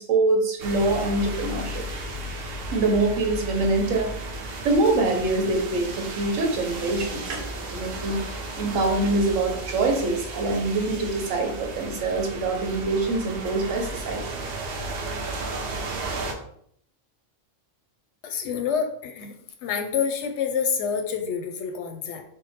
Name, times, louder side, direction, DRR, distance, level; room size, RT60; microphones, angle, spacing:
voice 1, 0.0-1.9 2.7-4.1 4.6-8.2 8.6-14.4, right 2 dB, 80° right, 3 dB, 1.1 m, -24 dB
sound 1, 0.6-16.3, right 2 dB, 60° right, 0.7 m, -34 dB
voice 2, 18.2-19.3 19.6-22.2, left 6 dB, 70° left, 5 dB, 0.8 m, -27 dB
3.6 x 2.1 x 4.1 m, 0.67 s
omnidirectional pair, 1.3 m